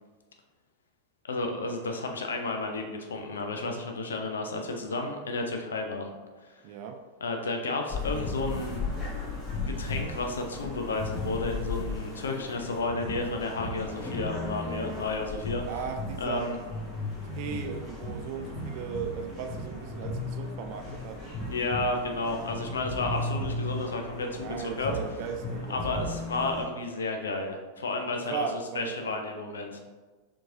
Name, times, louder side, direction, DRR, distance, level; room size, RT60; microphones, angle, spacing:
voice 1, 1.3-6.1 6.4-6.6 7.2-8.8 9.7-15.6 16.2-16.6 21.5-24.9 25.7-28.4 28.7-29.8, left 3 dB, 70° left, 3 dB, 0.5 m, -32 dB
voice 2, 6.6-7.0 15.7-16.5 17.4-21.4 24.4-26.1 28.1-29.1, right 6 dB, 45° right, 5 dB, 0.4 m, -37 dB
sound 1, 7.9-26.6, left 2 dB, 25° left, 1.1 m, -35 dB
4.5 x 2.8 x 2.6 m, 1.3 s
figure-of-eight pair, 90°, 0 cm